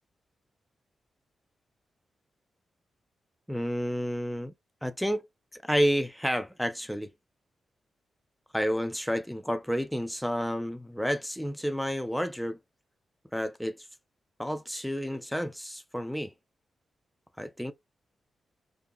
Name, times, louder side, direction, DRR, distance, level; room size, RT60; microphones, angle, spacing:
voice 1, 3.5-4.5 4.8-5.2 5.6-7.1 8.5-12.6 13.3-13.8 14.4-16.3 17.4-17.7, equal, ahead, 0.4 m, -30 dB
2.7 x 2.4 x 2.2 m
supercardioid pair, 50°, 0 cm